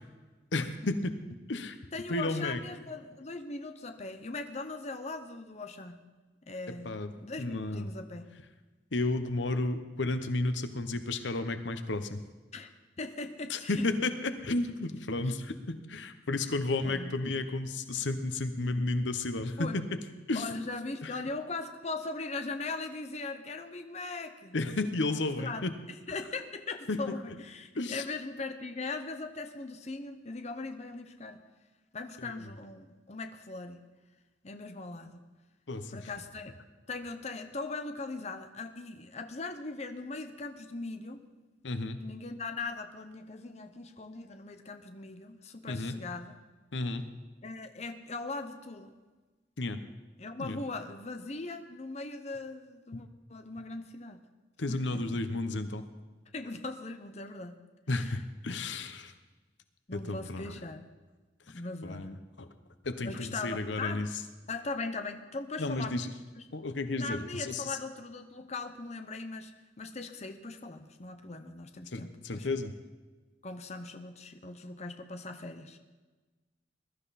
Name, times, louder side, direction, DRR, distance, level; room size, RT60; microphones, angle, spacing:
voice 1, 0.5-1.2 1.5-1.8 2.1-2.6 6.8-7.1 7.4-7.9 8.9-12.2 13.5-20.0 20.3-20.5 21.0-21.1 24.5-25.7 26.9-27.2 27.8-28.0 32.2-32.4 35.7-36.0 41.6-42.0 45.7-46.0 46.7-47.0 49.6-49.8 50.4-50.6 54.6-55.8 57.9-59.1 59.9-60.5 61.5-62.5 62.8-64.1 65.6-66.1 66.5-67.8 71.9-72.7, left 2 dB, 90° left, 9 dB, 1.0 m, -32 dB
voice 2, 1.9-6.0 6.5-8.3 12.5-12.7 13.0-13.9 16.8-17.1 19.6-19.8 20.3-24.6 25.1-25.6 25.9-31.4 31.9-33.8 34.4-35.2 35.9-36.5 36.9-41.2 42.0-46.4 47.4-48.9 50.2-54.2 54.7-55.2 56.3-57.5 58.0-58.2 59.9-60.8 61.5-62.1 63.0-64.1 64.5-66.0 66.4-66.5 67.0-69.5 69.8-72.5 73.4-75.8, left 3 dB, 40° left, 7 dB, 0.9 m, -40 dB
21.0 x 12.5 x 4.2 m, 1.2 s
head